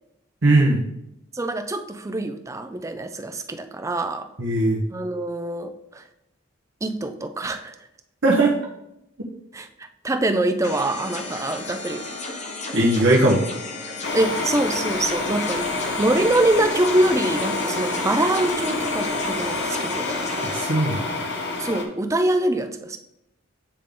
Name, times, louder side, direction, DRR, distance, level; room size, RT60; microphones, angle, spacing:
voice 1, 0.4-0.8 4.4-4.8 8.2-8.5 12.7-13.4 20.4-21.2, right 2 dB, 65° right, -3 dB, 1.0 m, -19 dB
voice 2, 1.3-4.3 4.9-6.0 6.8-7.7 9.5-12.0 14.1-15.7 16.0-20.1 21.6-23.0, right 1 dB, 15° right, 7 dB, 0.4 m, -24 dB
sound 1, 10.6-20.6, left 3 dB, 35° left, 0.8 m, -34 dB
sound 2, 14.0-21.8, left 3 dB, 60° left, 0.9 m, -27 dB
8.6 x 3.5 x 3.8 m, 0.81 s
head